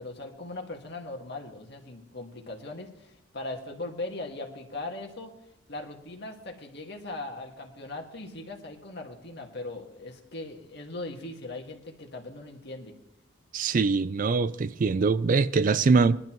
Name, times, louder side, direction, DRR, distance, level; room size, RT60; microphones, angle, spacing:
voice 1, 0.0-5.3 5.7-13.0, left 2 dB, 55° left, 1.8 m, -39 dB
voice 2, 13.5-16.2, right 4 dB, 40° right, 0.4 m, -23 dB
20.5 x 12.0 x 3.0 m
head